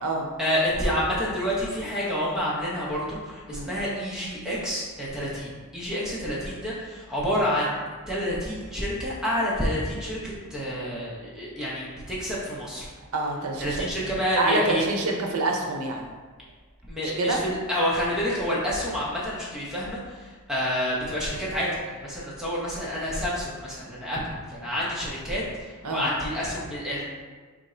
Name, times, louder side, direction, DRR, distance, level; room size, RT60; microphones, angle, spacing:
voice 1, 0.4-7.8 8.1-12.9 13.6-14.8 16.8-20.0 20.5-21.7 21.9-24.2 24.5-25.4 25.9-27.0, equal, 5° right, -7 dB, 0.9 m, -28 dB
voice 2, 13.1-13.9 14.4-16.1 17.0-17.4 25.8-26.1, right 2 dB, 75° right, 1 dB, 0.6 m, -27 dB
3.5 x 2.6 x 4.2 m, 1.4 s
head